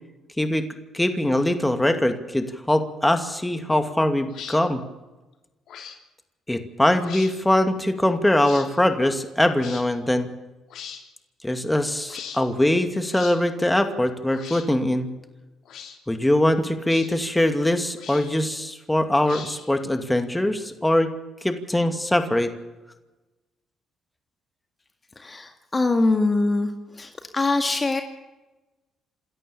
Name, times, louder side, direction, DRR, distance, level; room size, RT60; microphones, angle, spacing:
voice 1, 0.9-4.8 6.5-10.3 11.4-15.1 16.1-21.1 21.4-22.5, left 1 dB, 10° left, 7 dB, 2.5 m, -22 dB
sound 1, 4.3-4.6 5.7-6.0 7.0-7.3 8.4-8.7 9.6-9.8 10.7-11.0 12.1-12.4 13.1-13.4 14.3-14.7 15.6-16.0 16.9-17.1 18.0-18.4 19.2-19.8, left 8 dB, 70° left, 3.2 m, -39 dB
voice 2, 25.2-26.7 27.0-28.0, left 3 dB, 30° left, 5 dB, 2.0 m, -23 dB
27.5 x 13.5 x 7.2 m, 1.1 s
supercardioid pair, 65°, 0 cm